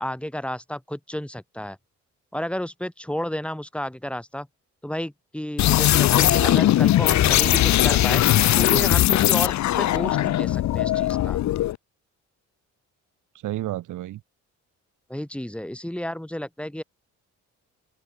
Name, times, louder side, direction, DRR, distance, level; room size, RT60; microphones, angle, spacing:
voice 1, 0.0-1.8 2.3-4.5 4.8-8.2 8.6-11.4 15.1-16.8, equal, 5° left, 5.0 m, -32 dB
sound 1, 5.6-11.8, left 14 dB, 65° left, 0.8 m, -19 dB
voice 2, 13.4-14.2, right 14 dB, 80° right, 2.0 m, -32 dB
open air
cardioid pair, 90°, 30 cm